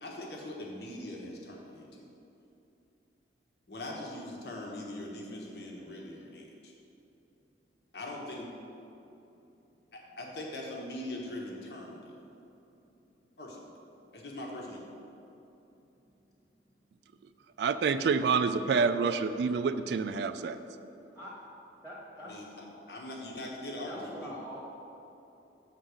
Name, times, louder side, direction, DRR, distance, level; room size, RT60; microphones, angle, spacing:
voice 1, 0.0-2.1 3.7-6.7 7.9-8.5 9.9-12.2 13.4-13.7 14.1-14.8 22.2-24.3, left 1 dB, 70° left, -1 dB, 1.2 m, -41 dB
voice 2, 17.6-20.6, right 5 dB, 70° right, 11 dB, 0.3 m, -27 dB
voice 3, 21.8-22.4 23.8-24.6, equal, ahead, -7 dB, 1.1 m, -44 dB
8.1 x 3.9 x 6.3 m, 2.9 s
head